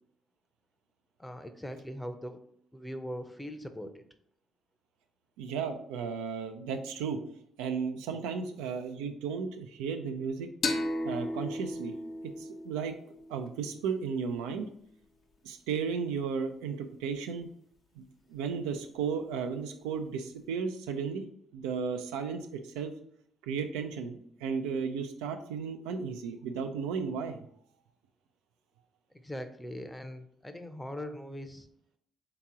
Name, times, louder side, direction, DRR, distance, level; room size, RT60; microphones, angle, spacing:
voice 1, 1.2-2.4 2.7-4.0 29.1-31.7, equal, 10° left, 8 dB, 0.6 m, -41 dB
voice 2, 5.4-7.2 7.6-10.5 11.0-11.9 12.4-13.0 13.3-14.7 15.4-17.5 18.0-21.2 21.5-22.9 23.4-27.4, right 6 dB, 90° right, 6 dB, 0.4 m, -34 dB
sound 1, 10.6-14.0, left 2 dB, 55° left, 0.6 m, -35 dB
3.6 x 2.9 x 4.7 m, 0.66 s
supercardioid pair, 60°, 0 cm